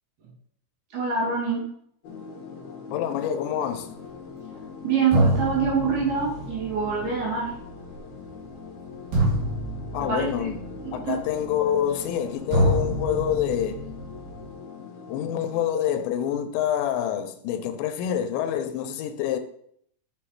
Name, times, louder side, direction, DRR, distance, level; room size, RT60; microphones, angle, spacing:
voice 1, 0.9-1.6 4.8-7.5 10.0-10.5 10.8-11.2, right 5 dB, 65° right, 4.4 m, -25 dB
sound 1, 2.0-15.7, left 5 dB, 65° left, 3.7 m, -42 dB
voice 2, 2.9-3.9 9.9-10.6 10.9-13.8 15.1-19.4, left 10 dB, 85° left, 3.0 m, -26 dB
sound 2, 4.5-4.6 5.1-12.2 12.5-14.5, right 1 dB, 80° right, 5.2 m, -28 dB
10.5 x 6.2 x 3.3 m
omnidirectional pair, 5.0 m